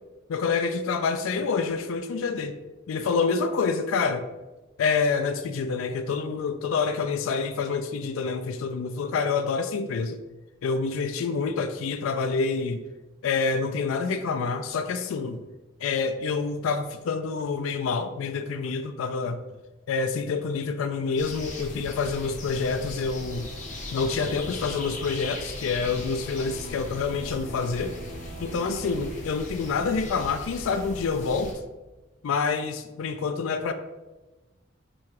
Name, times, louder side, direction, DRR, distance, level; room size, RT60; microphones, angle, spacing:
voice 1, 0.3-2.6 2.9-4.3 4.8-10.2 10.6-12.8 13.2-15.4 15.8-19.4 19.9-23.5 23.9-28.0 28.4-31.5 32.2-33.7, left 5 dB, 85° left, 8 dB, 0.3 m, -27 dB
sound 1, 21.2-31.5, left 2 dB, 40° left, 0.7 m, -38 dB
sound 2, 23.0-29.1, right 2 dB, 30° right, 1.3 m, -48 dB
3.6 x 3.0 x 4.5 m, 1.1 s
head